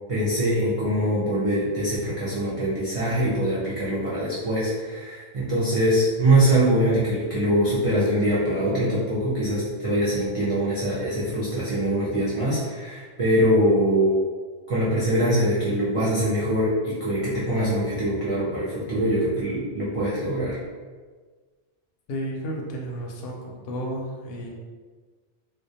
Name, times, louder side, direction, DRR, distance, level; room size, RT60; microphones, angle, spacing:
voice 1, 0.1-14.2 14.7-20.6, right 1 dB, 65° right, -8 dB, 0.3 m, -23 dB
voice 2, 22.1-24.5, equal, 65° left, -1 dB, 0.7 m, -32 dB
2.2 x 2.2 x 2.7 m, 1.5 s
omnidirectional pair, 1.2 m